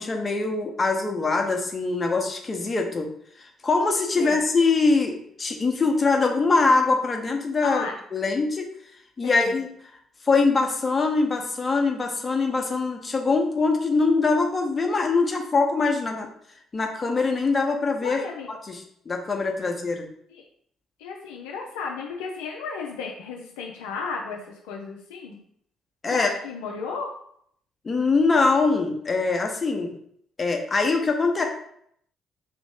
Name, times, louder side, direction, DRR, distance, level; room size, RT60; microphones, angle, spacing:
voice 1, 0.0-3.1 3.4-7.8 8.1-8.7 9.2-9.7 10.2-16.3 16.7-18.2 18.7-18.8 19.1-20.1 26.0-26.3 27.8-29.9 30.4-31.4, left 3 dB, 35° left, 3 dB, 0.8 m, -23 dB
voice 2, 7.6-8.0 9.2-9.5 18.0-18.5 19.6-19.7 20.3-20.4 21.0-25.4 26.1-27.1, left 5 dB, 75° left, 0 dB, 0.4 m, -34 dB
3.6 x 3.0 x 3.5 m, 0.67 s
hypercardioid pair, 45°, 0 cm